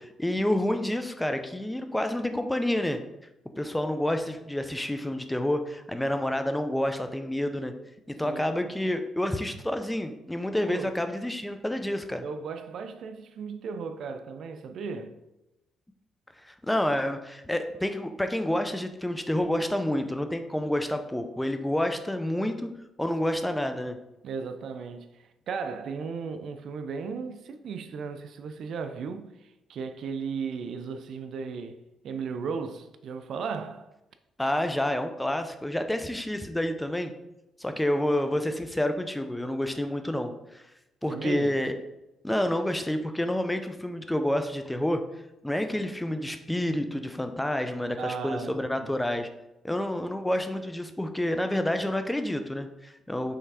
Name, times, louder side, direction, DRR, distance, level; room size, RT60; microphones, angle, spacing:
voice 1, 0.0-3.0 3.6-7.7 8.1-12.2 16.4-22.7 23.0-24.0 34.4-37.1 37.6-40.6 41.0-41.7 42.2-45.0 45.4-49.3 49.6-53.4, left 1 dB, 5° left, 0.6 m, -29 dB
voice 2, 12.2-15.2 24.2-33.9 41.1-41.6 48.0-48.9, right 5 dB, 65° right, 0.5 m, -36 dB
5.6 x 3.4 x 4.9 m
cardioid pair, 90°, 0 cm